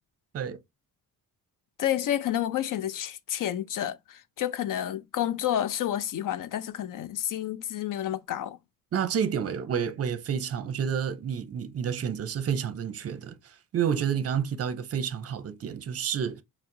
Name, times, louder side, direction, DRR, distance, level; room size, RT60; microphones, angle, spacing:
voice 1, 1.8-8.6, left 11 dB, 60° left, 0.5 m, -30 dB
voice 2, 8.9-16.4, right 8 dB, 40° right, 0.6 m, -30 dB
4.3 x 2.1 x 3.7 m
cardioid pair, 125°, 37 cm